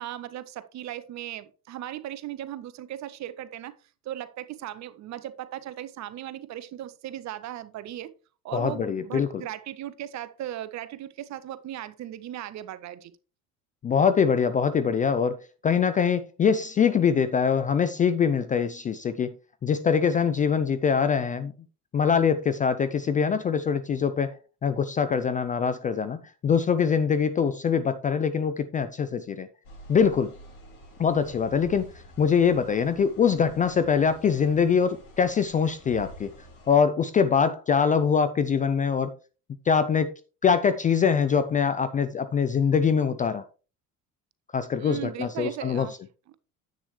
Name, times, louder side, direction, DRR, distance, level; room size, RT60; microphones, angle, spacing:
voice 1, 0.0-3.7 4.0-8.1 8.4-13.1 44.7-46.0 46.3-46.4, right 12 dB, 35° right, 0.8 m, -37 dB
voice 2, 8.5-9.4 13.8-19.3 19.6-21.5 21.9-29.5 29.9-30.3 31.0-31.9 32.2-36.3 36.7-39.1 39.7-43.4 44.5-45.9, left 6 dB, 20° left, 0.4 m, -23 dB
sound 1, 29.6-36.8, equal, 55° left, 4.1 m, -48 dB
10.0 x 8.3 x 3.1 m
figure-of-eight pair, 60°, 47 cm